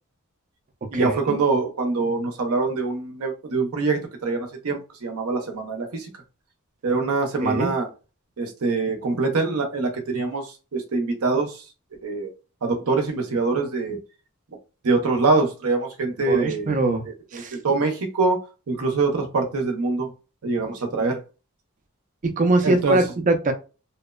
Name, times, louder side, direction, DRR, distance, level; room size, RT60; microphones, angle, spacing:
voice 1, 0.9-6.1 6.8-7.9 8.4-10.5 10.7-11.6 12.0-12.3 12.6-14.0 14.8-16.7 17.5-18.4 18.7-20.1 20.4-21.2 22.6-23.0, right 3 dB, 80° right, 0.6 m, -24 dB
voice 2, 16.3-17.1 17.3-17.6 22.2-23.5, right 2 dB, 35° right, 0.4 m, -22 dB
2.8 x 2.0 x 2.2 m
head